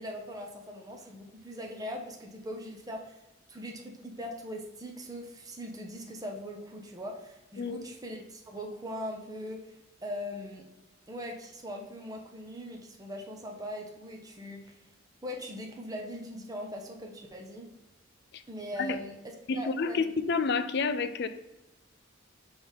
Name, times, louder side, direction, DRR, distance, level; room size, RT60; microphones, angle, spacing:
voice 1, 0.0-3.2 3.5-9.7 10.0-10.7 11.1-14.8 15.2-17.7 18.5-19.1 19.5-20.1, equal, 20° right, 1 dB, 0.8 m, -40 dB
voice 2, 19.5-21.3, left 4 dB, 55° left, 10 dB, 0.4 m, -29 dB
5.4 x 3.4 x 5.5 m, 1.0 s
head